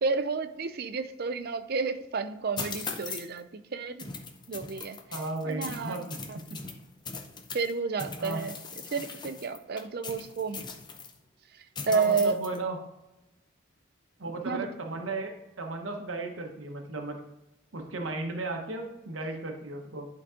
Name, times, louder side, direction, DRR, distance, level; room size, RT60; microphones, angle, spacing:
voice 1, 0.0-4.1 4.5-5.0 5.4-6.4 7.5-8.5 8.9-10.6 11.9-12.4 14.5-14.7, right 4 dB, 50° right, 11 dB, 0.5 m, -30 dB
sound 1, 2.6-3.4 4.0-7.7 8.0-11.1 11.7-12.6, left 4 dB, 20° left, 0.6 m, -40 dB
voice 2, 5.1-6.6 8.2-8.4 11.9-12.8 14.2-17.2 17.7-20.1, right 2 dB, 70° right, 3 dB, 1.0 m, -35 dB
11.0 x 3.9 x 3.7 m, 0.96 s
head